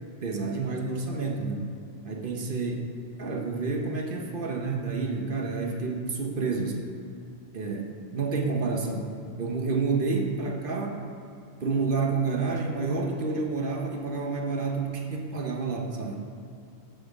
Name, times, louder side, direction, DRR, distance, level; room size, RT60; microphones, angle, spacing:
voice 1, 0.2-1.6 2.0-2.8 3.2-6.9 7.5-9.1 9.4-11.0 11.6-16.2, right 4 dB, 50° right, 1 dB, 1.0 m, -29 dB
8.0 x 4.4 x 7.0 m, 2.7 s
omnidirectional pair, 1.2 m